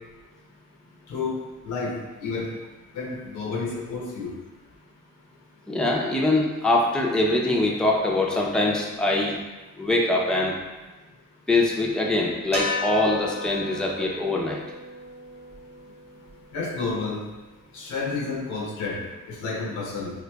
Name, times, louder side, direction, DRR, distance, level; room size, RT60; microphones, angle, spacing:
voice 1, 2.9-4.3 16.5-17.2 17.7-19.0 19.3-20.1, left 4 dB, 85° left, -3 dB, 0.9 m, -30 dB
voice 2, 5.7-9.4 9.8-10.6 11.5-14.6, left 2 dB, 5° left, -2 dB, 0.5 m, -23 dB
sound 1, 12.5-16.9, left 2 dB, 20° right, 0.8 m, -35 dB
4.8 x 2.4 x 2.2 m, 1.2 s
cardioid pair, 90°, 30 cm